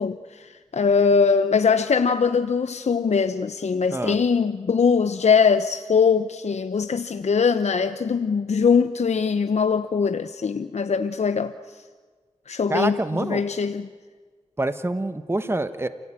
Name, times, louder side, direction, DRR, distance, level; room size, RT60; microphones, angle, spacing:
voice 1, 0.0-11.5 12.5-13.9, left 5 dB, 65° left, 0.8 m, -21 dB
voice 2, 12.7-13.4 14.6-15.9, right 2 dB, 20° right, 1.3 m, -26 dB
29.0 x 15.5 x 8.9 m
cardioid pair, 50°, 13 cm